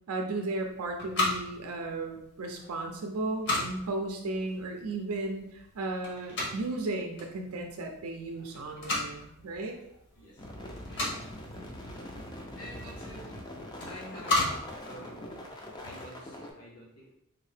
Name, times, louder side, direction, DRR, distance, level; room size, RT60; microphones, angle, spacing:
voice 1, 0.1-9.7, right 2 dB, 80° right, 3 dB, 0.5 m, -35 dB
sound 1, 0.5-15.8, left 2 dB, 50° left, 0.9 m, -37 dB
voice 2, 1.1-1.4 2.4-2.8 3.8-3.9 8.3-8.5 9.1-9.2 9.6-10.5 11.5-12.0 12.5-17.1, equal, 85° left, -4 dB, 1.0 m, -50 dB
sound 2, 10.4-16.5, left 1 dB, 20° left, 0.4 m, -43 dB
3.7 x 2.7 x 3.3 m, 0.80 s
head